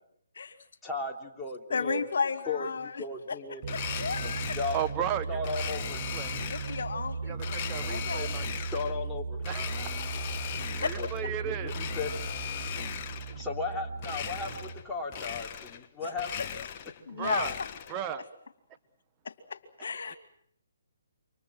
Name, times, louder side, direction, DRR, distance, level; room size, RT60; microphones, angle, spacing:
voice 1, 0.8-2.1 2.5-3.7 4.1-4.8 5.3-6.2 8.7-9.7 11.0-12.1 13.3-16.4, left 3 dB, 5° left, -2 dB, 3.2 m, -36 dB
voice 2, 1.7-2.9 3.3-4.6 6.5-8.4 10.6-10.9 16.0-16.1 17.1-17.7 19.2-20.2, left 5 dB, 65° left, 9 dB, 2.6 m, -34 dB
Domestic sounds home sounds, 3.6-4.9 5.4-6.9 7.4-9.0 9.4-11.2 11.6-13.4 14.0-14.8 15.1-15.9 16.1-18.0, left 9 dB, 35° left, 1.5 m, -38 dB
sound 1, 3.6-14.9, right 4 dB, 40° right, 5.9 m, -37 dB
voice 3, 4.7-5.4 6.1-6.4 7.2-8.5 9.5-9.9 10.7-11.7 17.1-17.5 17.9-18.2, right 9 dB, 25° right, 8 dB, 1.2 m, -34 dB
28.5 x 25.5 x 6.3 m, 0.67 s
figure-of-eight pair, 140°, 0 cm